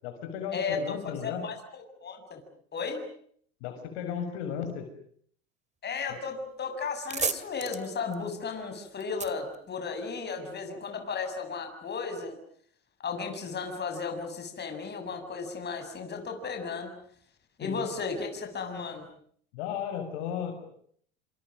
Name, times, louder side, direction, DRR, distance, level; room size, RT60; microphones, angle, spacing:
voice 1, 0.0-1.5 3.6-4.9 17.6-17.8 19.5-20.7, left 8 dB, 70° left, 7 dB, 6.8 m, -35 dB
voice 2, 1.2-2.4 2.7-3.1 5.8-12.4 13.0-16.9 17.6-19.1, left 5 dB, 30° left, 5 dB, 7.5 m, -34 dB
sound 1, 6.4-6.5 6.8-10.4, right 5 dB, 20° right, 2.3 m, -36 dB
29.0 x 26.5 x 6.5 m, 0.62 s
hypercardioid pair, 85°, 33 cm